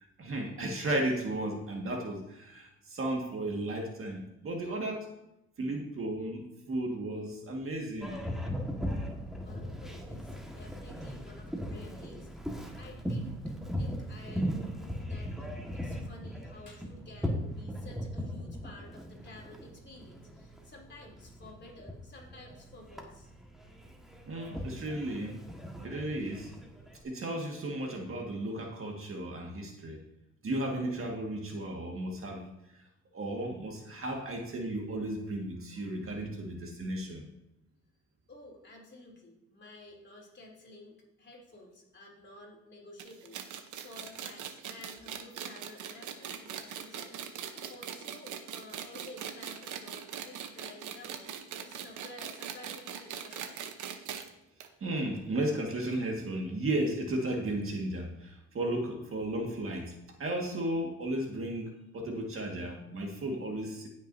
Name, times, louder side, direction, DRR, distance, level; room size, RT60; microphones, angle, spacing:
voice 1, 0.2-5.1 5.6-8.2 24.3-25.4 25.8-26.5 27.0-30.0 30.4-32.5 33.1-37.2 54.8-59.9 60.2-63.9, right 1 dB, 45° right, 1 dB, 1.9 m, -34 dB
Boat Water vehicle, 8.0-27.0, equal, ahead, 1.6 m, -38 dB
voice 2, 9.3-12.3 12.7-23.3 34.0-34.1 38.3-53.6, left 2 dB, 35° left, -1 dB, 3.1 m, -52 dB
sound 1, 43.0-54.3 54.6-54.7 55.0-55.1 55.9-56.0, right 8 dB, 75° right, 1.0 m, -41 dB
17.0 x 6.3 x 2.7 m, 0.88 s
cardioid pair, 90°, 30 cm